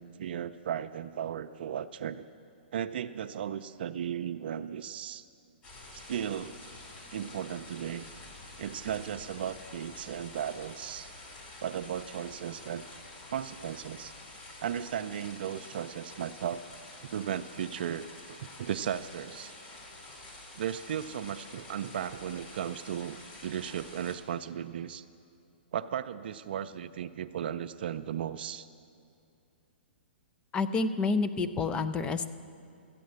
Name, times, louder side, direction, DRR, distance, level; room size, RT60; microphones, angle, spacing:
voice 1, 0.0-2.3 2.7-5.3 5.9-6.6 7.1-8.1 8.6-11.1 11.6-12.8 13.3-14.1 14.6-16.6 17.0-19.5 20.5-25.0 25.7-28.7, right 9 dB, 60° right, 10 dB, 0.5 m, -36 dB
sound 1, 5.6-24.2, left 2 dB, 30° left, 2.9 m, -48 dB
voice 2, 30.5-32.3, left 4 dB, 15° left, 11 dB, 0.5 m, -29 dB
13.5 x 8.4 x 7.8 m, 2.5 s
hypercardioid pair, 145°, 6 cm